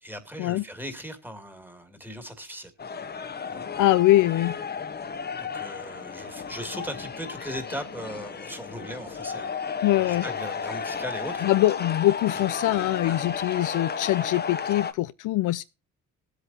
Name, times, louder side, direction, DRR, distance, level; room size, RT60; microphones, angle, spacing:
voice 1, 0.0-2.7 3.5-3.6 5.4-11.5 12.3-12.4 13.0-13.2, equal, 5° right, 2.3 m, -38 dB
sound 1, 2.8-14.9, left 6 dB, 30° left, 1.1 m, -33 dB
voice 2, 3.8-4.5 9.8-10.2 11.4-15.6, left 15 dB, 65° left, 0.6 m, -23 dB
20.5 x 8.2 x 2.7 m
cardioid pair, 90°, 33 cm